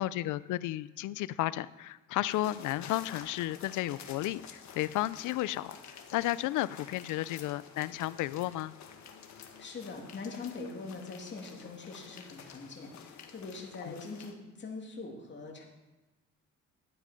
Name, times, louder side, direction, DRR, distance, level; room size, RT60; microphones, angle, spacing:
voice 1, 0.0-5.7 6.1-8.7 13.8-13.9, left 15 dB, 85° left, 17 dB, 0.5 m, -33 dB
sound 1, 2.3-14.3, left 7 dB, 65° left, 1.6 m, -50 dB
voice 2, 9.3-15.6, left 4 dB, 40° left, 0 dB, 2.8 m, -43 dB
12.0 x 9.5 x 5.2 m, 1.1 s
cardioid pair, 90°, 30 cm